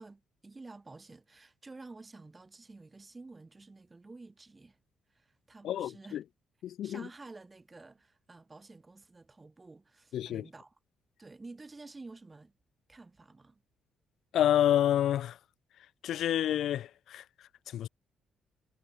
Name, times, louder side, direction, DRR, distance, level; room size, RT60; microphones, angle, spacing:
voice 1, 0.0-4.8 5.1-6.2 6.8-10.7 11.2-12.5 12.9-13.6, right 3 dB, 20° right, 6.7 m, -51 dB
voice 2, 5.6-6.2 6.6-7.1 10.1-10.5 14.3-15.4 16.0-17.9, left 11 dB, 75° left, 0.9 m, -29 dB
cardioid pair, 90°, 0 cm